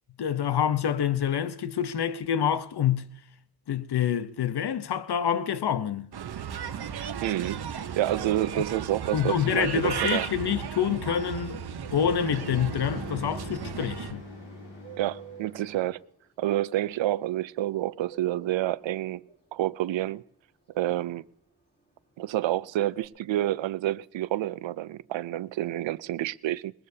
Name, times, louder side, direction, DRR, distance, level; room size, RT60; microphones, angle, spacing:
voice 1, 0.2-3.1 3.7-6.1 9.1-14.2, left 8 dB, 60° left, 0.9 m, -27 dB
Bird, 6.1-14.1, right 8 dB, 60° right, 0.9 m, -35 dB
voice 2, 6.9-7.6 8.0-10.3 15.0-16.0 16.4-19.2 19.5-20.2 20.7-21.2 22.2-26.7, right 13 dB, 85° right, 0.5 m, -29 dB
sound 1, 10.3-15.9, left 1 dB, 75° left, 5.5 m, -43 dB
Bird 2, 14.4-23.1, right 9 dB, 25° left, 6.1 m, -51 dB
21.0 x 20.5 x 2.8 m
cardioid pair, 75°, 44 cm